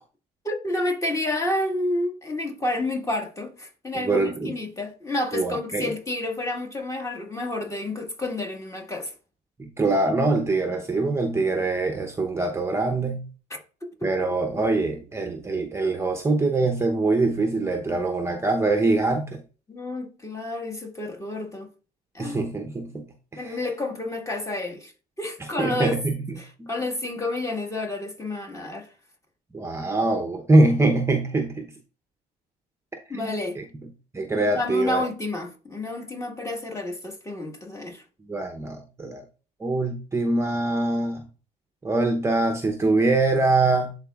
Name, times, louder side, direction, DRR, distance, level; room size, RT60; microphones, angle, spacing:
voice 1, 0.5-9.1 13.5-14.3 19.7-21.7 22.1-22.4 23.4-24.9 25.2-26.0 26.4-28.9 33.1-33.6 34.4-38.0, left 2 dB, 20° left, 1.6 m, -30 dB
voice 2, 3.9-4.6 5.3-5.9 9.6-13.2 14.0-19.4 22.2-23.1 23.3-23.7 25.4-26.7 29.5-31.7 33.1-33.6 34.1-35.0 38.3-39.2 39.6-41.3 41.8-43.9, right 2 dB, 15° right, 0.8 m, -24 dB
11.0 x 4.0 x 2.4 m
cardioid pair, 110°, 17 cm